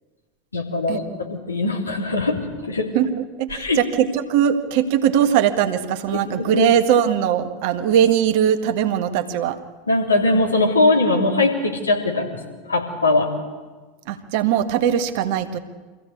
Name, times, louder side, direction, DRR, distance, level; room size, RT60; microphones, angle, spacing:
voice 1, 0.5-1.0 1.5-2.9 3.5-3.8 6.1-6.7 9.9-12.4 12.6-13.3, left 2 dB, 80° left, 0 dB, 3.4 m, -20 dB
voice 2, 2.9-9.6 14.1-15.6, right 9 dB, 55° right, 7 dB, 1.6 m, -20 dB
25.0 x 15.5 x 8.4 m, 1.3 s
figure-of-eight pair, 80°, 0 cm